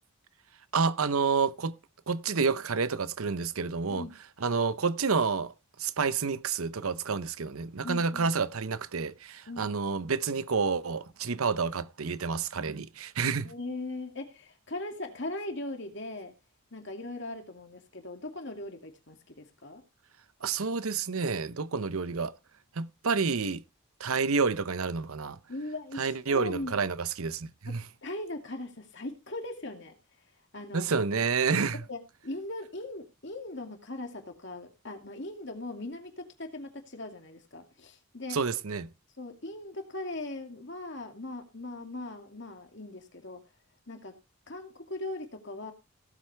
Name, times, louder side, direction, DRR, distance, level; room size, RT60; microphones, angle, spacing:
voice 1, 0.7-1.8 2.1-4.1 4.4-5.5 5.8-13.5 20.4-22.3 22.8-23.6 24.0-25.4 26.0-27.8 30.7-31.8 38.3-38.9, right 5 dB, 80° right, 0.8 m, -29 dB
voice 2, 7.8-8.3 9.5-9.8 13.4-16.3 16.7-19.8 25.5-26.7 27.7-27.8 28.0-29.9 30.5-30.9 31.9-38.4 39.2-43.4 43.9-44.1 44.5-45.7, left 2 dB, 55° left, 2.4 m, -39 dB
17.5 x 7.9 x 3.4 m
head